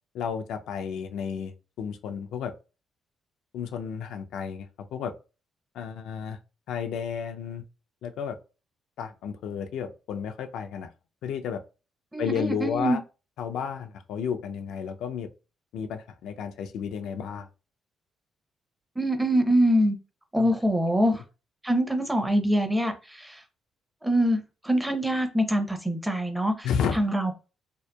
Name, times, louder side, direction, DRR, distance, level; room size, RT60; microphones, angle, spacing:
voice 1, 0.1-2.5 3.5-5.1 5.7-6.4 6.7-7.6 8.0-8.4 9.0-10.9 11.2-11.6 12.2-13.0 13.4-15.3 15.7-17.5 20.4-20.5 26.6-27.0, left 7 dB, 80° left, 0.3 m, -32 dB
voice 2, 12.1-13.0 19.0-20.0 20.3-21.2 21.6-23.4 24.0-26.7 26.9-27.3, equal, 10° right, 0.6 m, -24 dB
2.7 x 2.1 x 2.2 m
cardioid pair, 90°, 0 cm